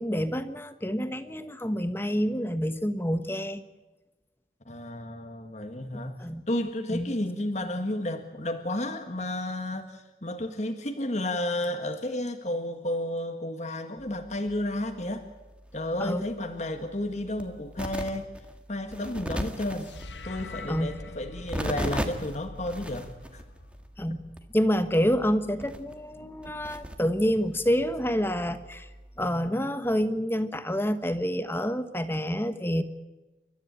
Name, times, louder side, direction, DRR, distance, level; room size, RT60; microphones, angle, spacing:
voice 1, 0.0-3.6 6.2-6.4 6.9-7.1 16.0-16.2 20.7-20.9 24.0-24.2 24.5-28.9 29.2-32.8, equal, 10° left, 10 dB, 1.3 m, -27 dB
voice 2, 4.7-6.2 6.5-15.3 15.7-18.3 18.7-20.0 20.2-23.4 24.1-24.2, left 1 dB, 40° left, 5 dB, 1.8 m, -32 dB
sound 1, 14.0-29.3, equal, 5° right, 1.8 m, -40 dB
sound 2, 19.8-24.2, left 2 dB, 75° left, 1.4 m, -43 dB
30.0 x 13.5 x 9.0 m, 1.1 s
head